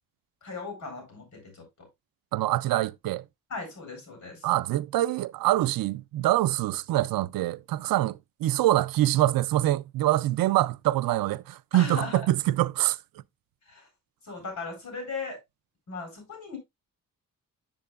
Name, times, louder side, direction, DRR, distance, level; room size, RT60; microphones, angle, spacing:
voice 1, 0.4-1.9 3.5-4.5 11.7-12.2 13.7-13.9 14.2-15.4 15.9-16.6, left 4 dB, 55° left, 4.7 m, -38 dB
voice 2, 2.3-3.2 4.4-13.0, right 15 dB, 90° right, 0.5 m, -25 dB
7.7 x 7.6 x 2.3 m
cardioid pair, 105°, 34 cm